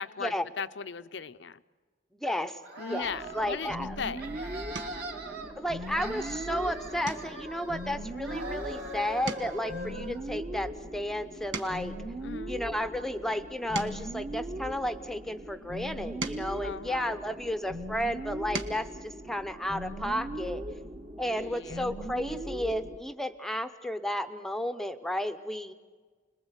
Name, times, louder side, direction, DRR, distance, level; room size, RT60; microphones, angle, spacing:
voice 1, 0.0-1.6 2.8-4.2 12.2-12.5 16.6-17.2 21.3-21.8, left 6 dB, 75° left, 13 dB, 0.7 m, -38 dB
voice 2, 2.1-2.6 2.9-4.0 5.3-11.9 12.5-20.6 21.2-25.7, equal, ahead, 9 dB, 0.8 m, -33 dB
sound 1, 2.6-3.8 4.1-5.5 5.8-8.0 8.2-10.2, right 1 dB, 60° right, 3.4 m, -41 dB
sound 2, 3.0-23.0, right 1 dB, 40° right, 1.5 m, -40 dB
sound 3, 3.9-4.1 4.7-5.1 5.6-6.0 6.3-6.5 7.0-8.8 9.1-12.0 12.7-15.1 15.8-17.6 18.2-18.9 20.3-20.4 20.7-20.9, right 3 dB, 75° right, 1.7 m, -42 dB
29.5 x 21.0 x 8.1 m, 1.4 s
head